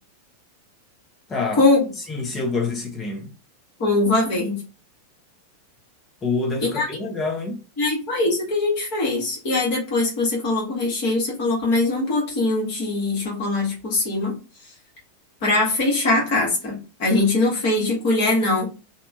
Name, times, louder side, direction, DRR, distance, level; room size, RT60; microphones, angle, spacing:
voice 1, 1.3-1.6 2.0-3.3 6.2-7.6, left 3 dB, 20° left, 0.6 m, -27 dB
voice 2, 3.8-4.6 6.7-6.9 7.8-14.3 15.4-18.7, left 2 dB, 45° left, 1.3 m, -21 dB
2.8 x 2.1 x 2.6 m
figure-of-eight pair, 90°, 0 cm